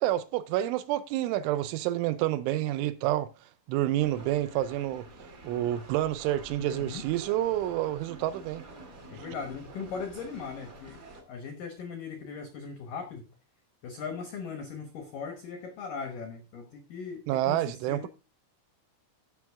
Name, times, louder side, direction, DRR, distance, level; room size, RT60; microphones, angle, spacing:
voice 1, 0.0-3.3 3.7-5.1 5.4-8.6 17.3-18.1, right 14 dB, 80° right, 3.0 m, -28 dB
sound 1, 4.0-11.2, right 2 dB, 45° right, 1.4 m, -48 dB
voice 2, 6.6-7.0 9.1-11.0 11.3-13.3 13.8-18.1, left 5 dB, 80° left, 1.9 m, -39 dB
15.5 x 6.1 x 3.5 m
omnidirectional pair, 5.7 m